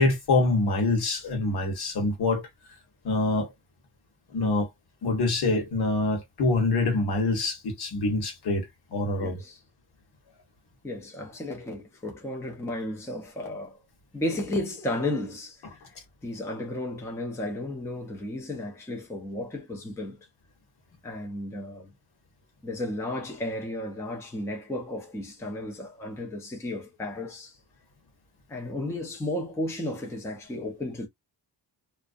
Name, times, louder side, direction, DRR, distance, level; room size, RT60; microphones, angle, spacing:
voice 1, 0.0-2.5 3.0-3.5 4.3-4.7 5.0-9.4, left 2 dB, 65° left, 1.1 m, -25 dB
voice 2, 9.2-9.6 10.8-13.8 14.1-16.0 16.2-20.2 21.0-21.9 22.6-27.6 28.5-31.1, left 1 dB, 5° left, 0.4 m, -33 dB
2.4 x 2.0 x 2.5 m
wide cardioid pair, 165°, 41 cm